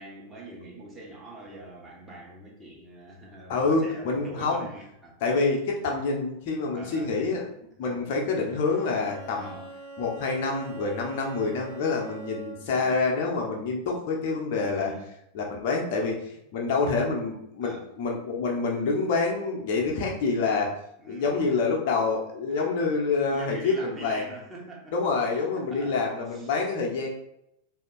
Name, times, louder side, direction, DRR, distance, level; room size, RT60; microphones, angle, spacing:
voice 1, 0.0-5.2 6.7-7.2 7.8-8.2 9.4-9.7 12.8-13.0 14.7-15.1 17.6-17.9 21.0-21.5 22.5-22.9 23.3-25.0 25.7-26.0 26.3-26.5, right 2 dB, 15° right, -4 dB, 1.4 m, -44 dB
voice 2, 3.5-4.7 5.2-7.5 7.8-9.6 10.0-14.9 15.3-20.7 21.1-24.3 24.9-27.1, left 4 dB, 45° left, 0 dB, 1.1 m, -27 dB
Bowed string instrument, 8.4-12.9, right 4 dB, 40° right, 0.9 m, -43 dB
4.1 x 2.8 x 4.0 m, 0.78 s
figure-of-eight pair, 90°, 0 cm